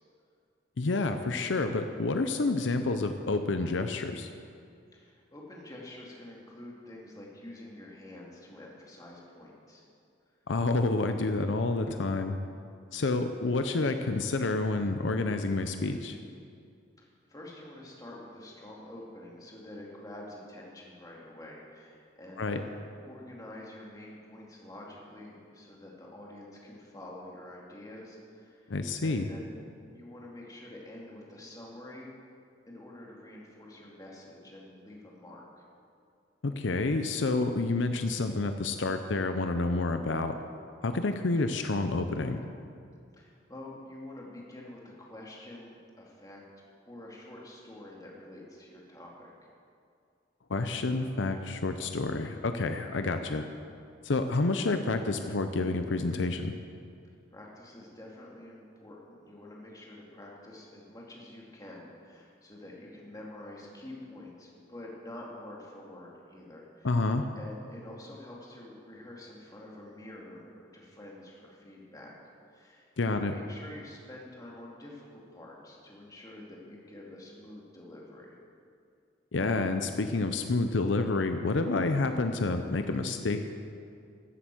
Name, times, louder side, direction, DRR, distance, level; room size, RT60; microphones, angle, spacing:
voice 1, 0.8-4.3 10.5-12.4 12.9-16.2 22.4-22.6 28.7-29.3 36.4-40.3 40.8-42.4 50.5-53.5 54.0-56.5 66.8-67.3 73.0-73.3 79.3-83.5, left 3 dB, 80° left, 7 dB, 0.7 m, -29 dB
voice 2, 4.9-9.8 17.0-22.8 23.0-28.7 29.0-29.7 29.9-32.2 32.7-35.6 43.1-46.4 46.9-49.3 57.3-67.0 67.4-72.2 72.5-78.3, left 1 dB, 20° left, -3 dB, 2.5 m, -47 dB
13.5 x 8.1 x 7.8 m, 2.4 s
head